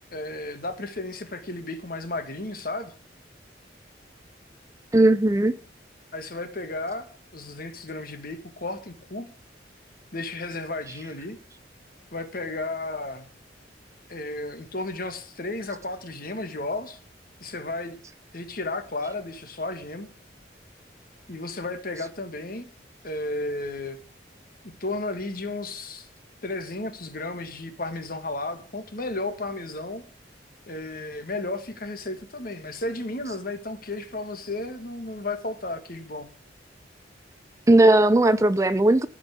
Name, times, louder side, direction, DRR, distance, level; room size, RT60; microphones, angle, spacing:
voice 1, 0.1-2.9 6.1-7.1 7.3-9.3 10.1-11.4 12.1-13.3 14.1-17.0 17.4-18.0 18.3-20.1 21.3-22.7 23.0-24.0 24.8-26.1 26.4-30.0 30.7-36.3, left 2 dB, 50° left, 1.7 m, -33 dB
voice 2, 4.9-5.5 37.7-39.1, right 1 dB, 15° right, 0.4 m, -17 dB
14.5 x 5.4 x 8.2 m
head